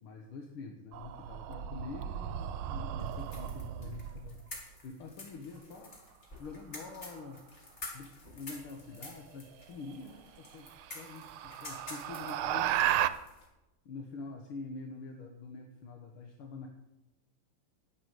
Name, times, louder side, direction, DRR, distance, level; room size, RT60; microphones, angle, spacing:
voice 1, 0.0-4.4 4.8-5.9 6.4-7.4 7.9-10.7 10.9-12.8 13.9-16.7, left 4 dB, 80° left, 3 dB, 2.1 m, -46 dB
sound 1, 0.9-4.4 6.8-7.2 9.3-9.4 9.9-10.0 10.5-13.1, right 11 dB, 85° right, 1.6 m, -34 dB
sound 2, 3.0-13.5, left 2 dB, 35° left, 2.8 m, -50 dB
11.0 x 9.6 x 7.9 m, 0.95 s
omnidirectional pair, 2.3 m